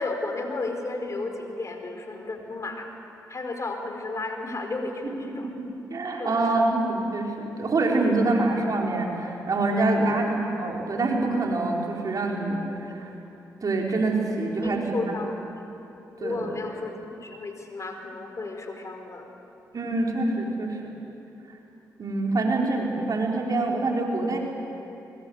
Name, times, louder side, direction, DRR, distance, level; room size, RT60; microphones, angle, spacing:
voice 1, 0.0-2.9 3.3-5.5 6.2-6.6 10.0-10.2 12.8-12.9 14.6-15.3 16.2-19.3, left 3 dB, 45° left, 4 dB, 4.6 m, -33 dB
voice 2, 5.9-13.1 13.6-15.0 16.2-16.5 19.7-20.9 21.5-21.6 22.0-24.4, right 2 dB, 55° right, -1 dB, 5.2 m, -25 dB
24.5 x 23.5 x 8.3 m, 2.9 s
supercardioid pair, 45°, 8 cm